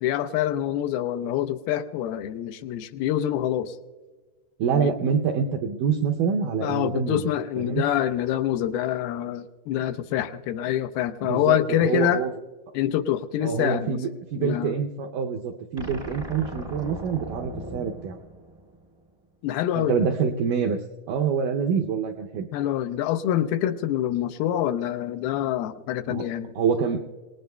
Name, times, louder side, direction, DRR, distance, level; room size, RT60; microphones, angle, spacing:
voice 1, 0.0-3.8 4.7-5.0 6.6-12.2 12.7-14.0 14.4-14.7 19.4-20.0 22.5-26.5, left 11 dB, 80° left, 10 dB, 2.3 m, -26 dB
voice 2, 4.6-7.2 7.6-7.8 11.2-12.3 13.4-18.2 19.8-22.5 26.1-26.3 26.6-27.1, right 6 dB, 80° right, 2 dB, 1.8 m, -26 dB
sound 1, 15.8-19.1, right 1 dB, 65° right, 0.3 m, -38 dB
27.0 x 19.0 x 2.2 m, 1.4 s
omnidirectional pair, 4.5 m